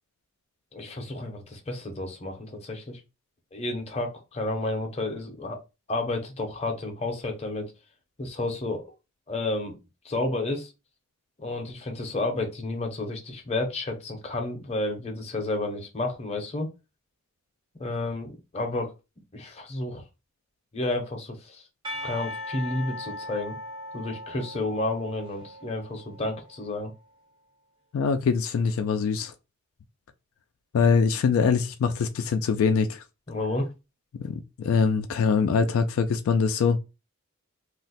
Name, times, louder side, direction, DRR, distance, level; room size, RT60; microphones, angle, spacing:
voice 1, 0.7-3.0 3.5-5.6 5.9-7.7 8.2-8.8 9.3-9.8 10.0-10.7 11.4-16.7 17.8-18.9 19.3-20.0 20.7-21.6 22.0-23.6 23.9-26.9 33.3-33.7, left 2 dB, 30° left, 0.6 m, -31 dB
Percussion / Church bell, 21.8-26.6, left 1 dB, 20° right, 0.6 m, -39 dB
voice 2, 27.9-29.3 30.7-33.0 34.1-36.8, left 5 dB, 75° left, 0.3 m, -23 dB
2.4 x 2.1 x 3.9 m
head